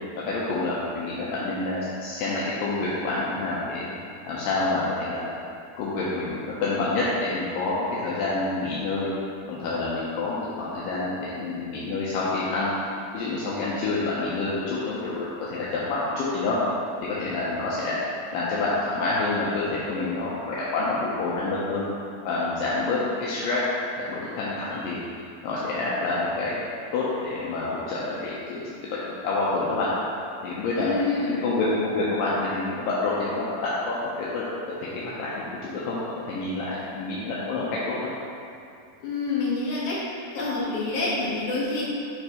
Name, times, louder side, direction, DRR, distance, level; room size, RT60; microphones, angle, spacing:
voice 1, 0.2-3.9 4.3-5.2 5.8-9.1 9.5-12.8 13.1-16.6 17.0-18.0 18.3-21.9 22.3-23.6 24.0-25.0 25.4-26.6 26.9-28.6 29.0-29.9 30.4-30.9 31.4-38.0, left 3 dB, 80° left, -7 dB, 2.0 m, -28 dB
voice 2, 30.8-31.4 39.0-40.0 40.3-41.8, left 3 dB, 60° left, -7 dB, 2.2 m, -27 dB
7.9 x 3.2 x 4.8 m, 2.6 s
omnidirectional pair, 4.9 m